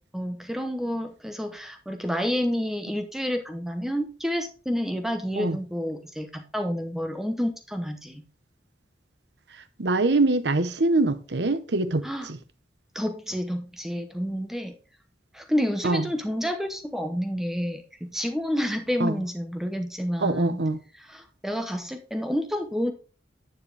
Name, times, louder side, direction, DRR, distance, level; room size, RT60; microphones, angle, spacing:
voice 1, 0.1-8.2 12.0-12.3 12.9-14.7 15.3-20.6 21.1-22.9, equal, ahead, 0.8 m, -29 dB
voice 2, 9.8-12.4 15.8-16.1 19.0-19.2 20.2-20.8, right 2 dB, 75° right, 0.9 m, -24 dB
9.6 x 7.2 x 3.3 m
head